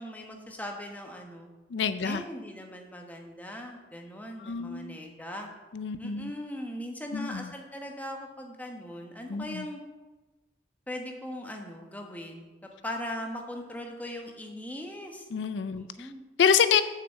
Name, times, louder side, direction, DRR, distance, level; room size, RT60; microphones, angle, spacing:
voice 1, 0.0-1.5 2.0-5.5 6.0-9.8 10.9-15.3 15.8-16.2, left 1 dB, 10° left, 1 dB, 1.2 m, -39 dB
voice 2, 1.7-2.2 4.4-5.0 5.7-6.3 7.1-7.5 9.3-9.7 15.3-16.1 16.4-16.8, left 7 dB, 80° left, 13 dB, 0.4 m, -27 dB
6.8 x 6.1 x 7.3 m, 1.2 s
head